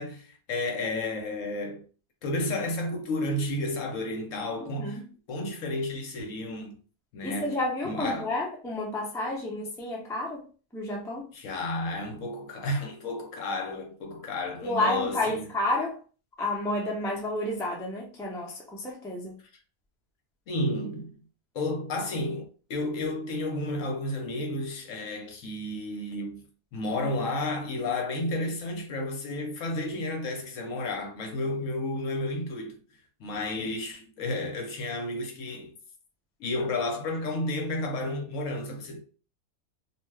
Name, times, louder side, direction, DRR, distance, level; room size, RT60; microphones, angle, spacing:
voice 1, 0.0-1.8 2.2-5.0 5.3-6.8 7.1-8.4 11.3-15.5 20.5-21.2 21.5-32.8 33.2-35.7 36.4-39.0, left 2 dB, 65° left, 1.0 m, -32 dB
voice 2, 7.2-10.4 10.7-11.2 14.6-15.9 16.4-19.4, left 2 dB, 5° left, 0.3 m, -30 dB
2.6 x 2.2 x 3.2 m
omnidirectional pair, 1.5 m